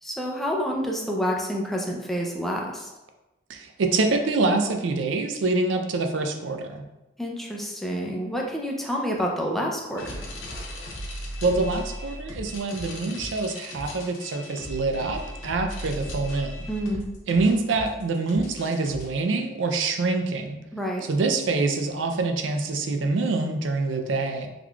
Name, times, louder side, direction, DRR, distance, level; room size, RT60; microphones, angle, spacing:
voice 1, 0.0-2.9 7.2-10.0 16.7-17.1 20.7-21.1, equal, ahead, -1 dB, 0.4 m, -28 dB
voice 2, 3.5-6.8 11.4-16.6 17.3-20.6 21.1-24.5, right 3 dB, 70° right, 5 dB, 0.4 m, -25 dB
sound 1, 10.0-19.1, equal, 80° left, 0.8 m, -37 dB
3.9 x 3.1 x 2.3 m, 0.98 s
head